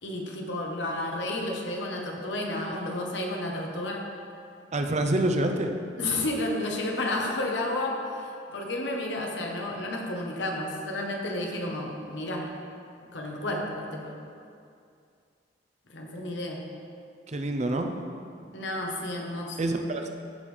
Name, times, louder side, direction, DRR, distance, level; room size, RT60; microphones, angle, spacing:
voice 1, 0.0-4.1 6.0-12.5 13.1-14.2 15.9-16.6 18.5-19.6, left 1 dB, 85° left, 0 dB, 1.2 m, -31 dB
voice 2, 4.7-5.7 17.3-17.9 19.6-20.1, right 1 dB, 40° right, 5 dB, 0.6 m, -26 dB
15.0 x 5.4 x 3.3 m, 2.4 s
head